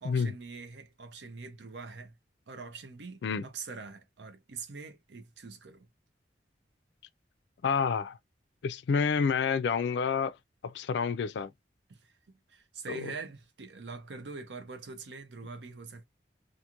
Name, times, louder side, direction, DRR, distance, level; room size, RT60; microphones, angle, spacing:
voice 1, 0.0-2.1 2.5-5.9 11.9-12.1 12.5-16.0, right 4 dB, 75° right, 0.6 m, -44 dB
voice 2, 7.6-8.2 8.6-10.3 10.6-11.5 12.9-13.0, left 6 dB, 75° left, 0.3 m, -28 dB
2.5 x 2.5 x 2.9 m
head